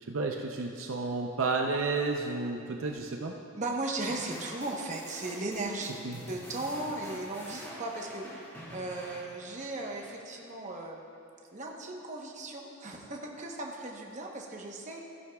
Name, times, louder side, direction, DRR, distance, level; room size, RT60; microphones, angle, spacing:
voice 1, 0.1-3.3 6.0-6.2, right 3 dB, 65° right, 1 dB, 0.6 m, -31 dB
voice 2, 3.6-5.9 6.3-8.4 8.7-11.0 11.5-15.0, right 2 dB, 35° right, 0 dB, 1.0 m, -37 dB
sound 1, 4.0-10.5, equal, 10° left, 2.2 m, -47 dB
15.5 x 11.0 x 2.3 m, 2.6 s
head